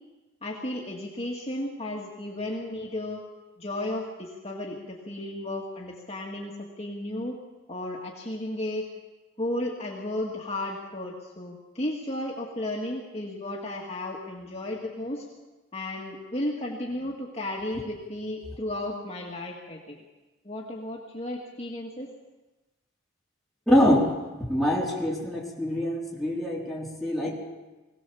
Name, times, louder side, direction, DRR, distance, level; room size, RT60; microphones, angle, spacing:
voice 1, 0.4-3.2 3.6-7.4 7.7-8.9 9.4-15.3 15.7-20.0 20.4-22.1, left 1 dB, 30° left, -2 dB, 2.0 m, -34 dB
voice 2, 23.7-24.0 24.5-27.5, equal, ahead, -5 dB, 4.0 m, -24 dB
22.0 x 18.0 x 7.1 m, 1.1 s
head